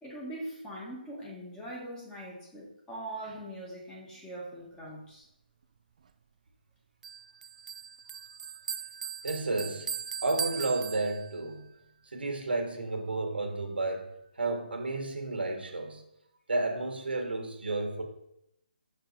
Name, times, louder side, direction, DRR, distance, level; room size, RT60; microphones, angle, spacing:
voice 1, 0.0-5.2, right 1 dB, 10° left, 1.5 m, -42 dB
Bell, 7.0-11.5, right 7 dB, 45° right, 0.3 m, -39 dB
voice 2, 9.2-9.9 10.2-11.7 12.0-16.0 16.5-18.0, right 2 dB, 85° right, 1.4 m, -32 dB
6.0 x 5.5 x 4.0 m
hypercardioid pair, 155°, 5 cm